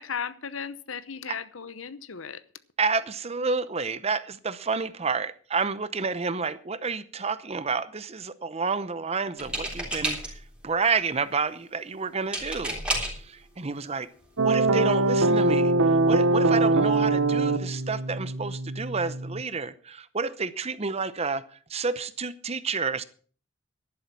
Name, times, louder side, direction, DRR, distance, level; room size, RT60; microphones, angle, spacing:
voice 1, 0.0-2.4, left 6 dB, 70° left, 0.9 m, -36 dB
voice 2, 2.8-14.1 14.4-21.4 21.7-23.0, right 4 dB, 30° right, 0.7 m, -30 dB
sound 1, 9.4-10.5 12.3-13.3 14.2-14.3 14.7-14.9, right 1 dB, 5° right, 3.6 m, -31 dB
sound 2, 14.4-19.4, right 2 dB, 85° right, 0.9 m, -23 dB
11.5 x 11.0 x 6.0 m
head